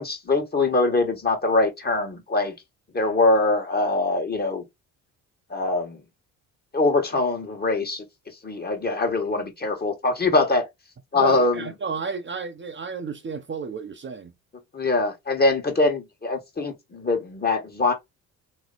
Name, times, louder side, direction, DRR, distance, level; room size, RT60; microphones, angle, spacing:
voice 1, 0.0-2.5 2.9-4.6 5.5-6.0 6.7-8.0 8.4-10.7 11.1-11.7 14.7-17.9, left 2 dB, 25° left, 1.5 m, -23 dB
voice 2, 11.1-14.3, right 5 dB, 35° right, 0.8 m, -32 dB
3.1 x 2.8 x 4.0 m
supercardioid pair, 65°, 35 cm